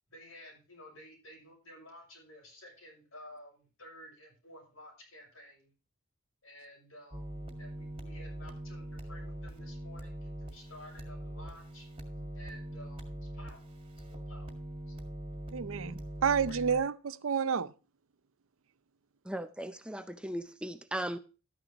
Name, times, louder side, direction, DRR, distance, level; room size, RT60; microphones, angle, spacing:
voice 1, 0.1-5.7 6.4-11.9 12.3-13.6 14.1-14.5 14.9-15.0 16.5-16.6, left 1 dB, 85° left, 6.4 m, -53 dB
sound 1, 7.1-16.8, right 1 dB, 25° right, 1.8 m, -42 dB
voice 2, 15.5-17.7, right 6 dB, 80° right, 0.5 m, -30 dB
voice 3, 19.3-21.2, right 1 dB, 5° right, 0.5 m, -37 dB
12.5 x 9.8 x 2.9 m
head